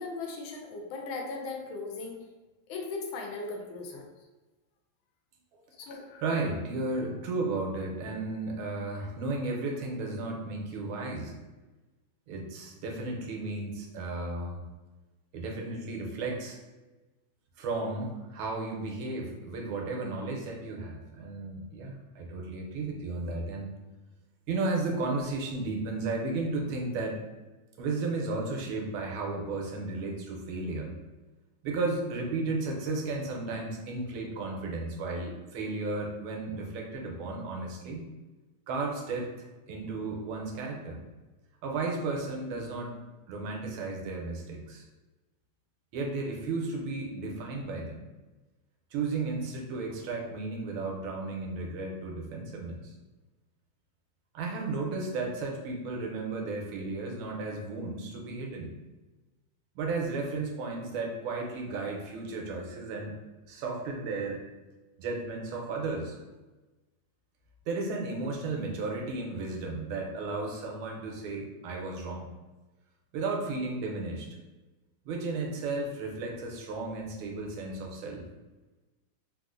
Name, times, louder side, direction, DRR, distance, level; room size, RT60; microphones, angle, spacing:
voice 1, 0.0-2.2 2.7-4.0 5.8-6.2, left 3 dB, 80° left, 1 dB, 1.4 m, -38 dB
voice 2, 6.2-11.4 12.3-14.6 15.3-16.6 17.6-23.7 24.5-27.2 27.8-30.9 31.6-38.0 38.7-41.0 41.6-43.0 43.3-44.8 45.9-48.0 48.9-52.9 54.3-58.7 59.7-63.1 63.5-64.4 65.0-66.2 67.7-72.3 73.1-74.3 75.0-78.3, right 3 dB, 85° right, 0 dB, 1.5 m, -34 dB
3.8 x 2.4 x 2.4 m, 1.2 s
omnidirectional pair, 2.3 m